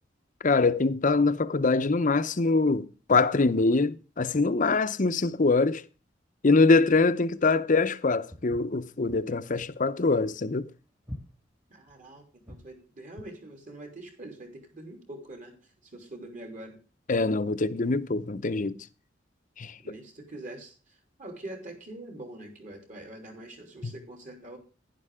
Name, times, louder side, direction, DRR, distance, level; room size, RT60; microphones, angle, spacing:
voice 1, 0.4-5.8 6.4-10.7 17.1-18.7 19.6-19.8 23.8-23.9, left 3 dB, 45° left, 0.7 m, -24 dB
Walk footsteps, 8.3-12.8, left 1 dB, 15° right, 1.7 m, -45 dB
voice 2, 11.7-16.8 19.8-24.6, right 1 dB, 45° right, 3.4 m, -44 dB
11.0 x 11.0 x 3.6 m
head